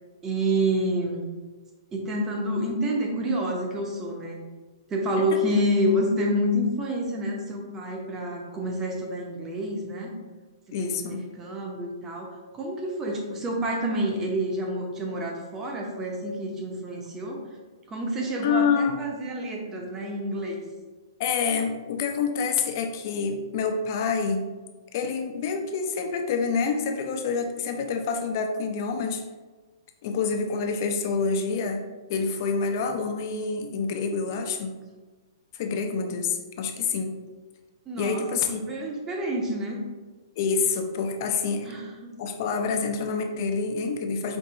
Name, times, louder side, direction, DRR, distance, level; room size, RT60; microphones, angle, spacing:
voice 1, 0.2-1.2 1.9-4.4 4.9-10.1 10.8-17.4 17.9-20.6 37.9-39.8 41.6-42.1, equal, 15° right, 0 dB, 0.7 m, -28 dB
voice 2, 10.7-11.3 18.4-19.0 21.2-24.5 24.9-29.2 30.0-34.8 35.5-37.2 38.0-38.6 40.4-41.7 42.2-44.4, left 5 dB, 45° left, 5 dB, 0.5 m, -27 dB
4.6 x 2.6 x 3.9 m, 1.3 s
hypercardioid pair, 155°, 2 cm